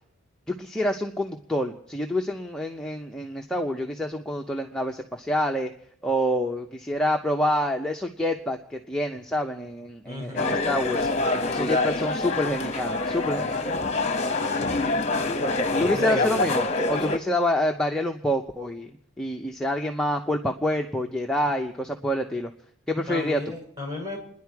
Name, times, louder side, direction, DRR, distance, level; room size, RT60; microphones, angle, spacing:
voice 1, 0.5-5.7 6.0-11.1 11.5-13.7 15.8-18.9 19.2-22.5 22.9-23.4, left 1 dB, 5° left, 2 dB, 0.7 m, -27 dB
voice 2, 10.0-10.5 14.2-14.9 15.9-16.4 23.1-24.2, left 2 dB, 20° right, -3 dB, 6.2 m, -33 dB
sound 1, 10.4-17.2, left 2 dB, 30° left, 1.0 m, -26 dB
29.0 x 10.5 x 4.7 m, 0.67 s
head